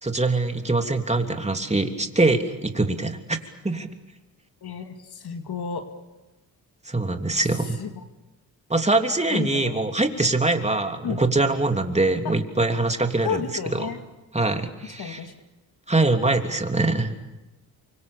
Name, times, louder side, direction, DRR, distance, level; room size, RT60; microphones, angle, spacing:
voice 1, 0.0-3.4 3.6-3.9 6.9-7.8 8.7-13.4 13.7-13.9 14.3-15.3 15.9-17.1, right 2 dB, 15° right, 5 dB, 3.2 m, -23 dB
voice 2, 4.6-5.8 7.8-7.9 9.3-9.8 11.0-11.2 13.2-14.0 15.0-15.3 16.8-16.9, left 7 dB, 65° left, 6 dB, 2.5 m, -31 dB
28.5 x 25.0 x 7.0 m, 1.1 s
supercardioid pair, 45°, 41 cm